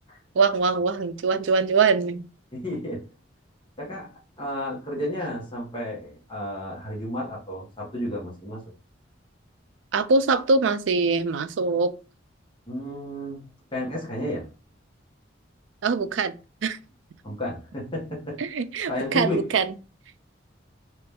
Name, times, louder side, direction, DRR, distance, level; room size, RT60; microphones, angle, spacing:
voice 1, 0.4-2.2 9.9-11.9 15.8-16.3 16.6-16.8 18.4-19.7, right 4 dB, 80° right, 0.4 m, -23 dB
voice 2, 2.5-3.0 3.8-4.1 4.4-8.6 12.7-13.4 13.7-14.5 17.2-18.4 18.9-19.5, left 1 dB, 25° left, 1.2 m, -32 dB
3.3 x 3.0 x 3.4 m
head